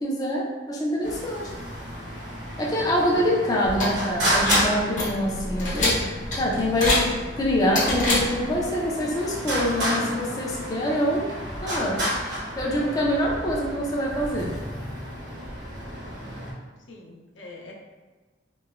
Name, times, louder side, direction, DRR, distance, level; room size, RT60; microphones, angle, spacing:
voice 1, 0.0-1.5 2.6-7.0 7.3-11.2 11.6-12.0 12.6-14.5, equal, 20° left, -4 dB, 0.4 m, -25 dB
Traffic noise roadway noise, 1.0-16.5, equal, 75° right, 0.9 m, -32 dB
sound 1, 3.7-8.7, left 1 dB, 45° left, 0.9 m, -27 dB
voice 2, 16.9-17.7, left 2 dB, 80° left, -1 dB, 0.5 m, -44 dB
3.0 x 2.0 x 2.3 m, 1.3 s
head